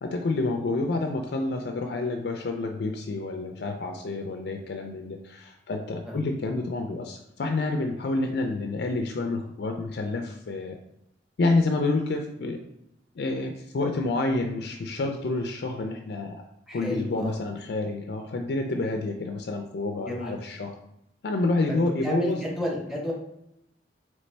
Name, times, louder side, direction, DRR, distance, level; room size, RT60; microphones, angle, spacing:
voice 1, 0.0-10.8 11.4-12.7 13.2-16.5 16.7-20.8 21.2-22.4, left 2 dB, 65° left, 4 dB, 0.4 m, -28 dB
voice 2, 16.7-17.4 20.1-20.3 21.7-23.1, equal, ahead, -3 dB, 0.9 m, -31 dB
4.1 x 3.1 x 3.3 m, 0.80 s
head